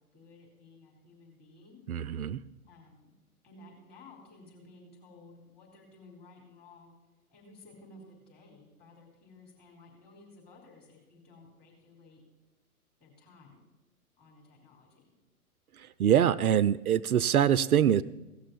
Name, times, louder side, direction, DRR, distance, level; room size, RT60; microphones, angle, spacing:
voice 1, 0.0-1.8 2.7-3.1 3.4-6.9 7.3-12.2 13.0-13.6 14.2-15.0, left 2 dB, 20° left, -3 dB, 4.3 m, -55 dB
voice 2, 1.9-2.4 15.8-18.0, right 9 dB, 75° right, 16 dB, 0.5 m, -24 dB
16.5 x 6.3 x 7.1 m, 1.1 s
figure-of-eight pair, 115°, 45 cm